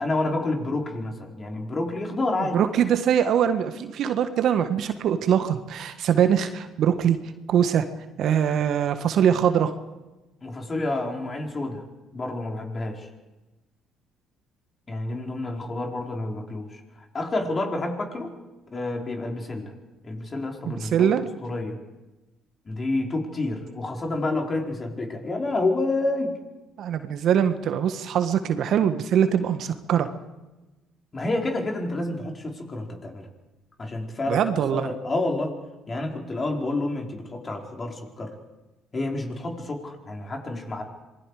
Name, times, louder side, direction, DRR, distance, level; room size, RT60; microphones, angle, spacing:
voice 1, 0.0-2.6 10.4-11.8 12.1-13.1 14.9-16.8 17.1-18.3 18.7-19.7 20.0-21.1 21.4-21.8 22.6-26.4 31.1-33.3 33.8-35.6 35.9-38.3 38.9-40.8, left 2 dB, 35° left, 2 dB, 4.6 m, -29 dB
voice 2, 2.4-7.2 7.5-7.8 8.2-9.7 20.6-21.3 26.8-30.1 34.3-34.9, right 9 dB, 60° right, 9 dB, 1.5 m, -22 dB
26.5 x 20.5 x 5.0 m, 1.1 s
hypercardioid pair, 55°, 0 cm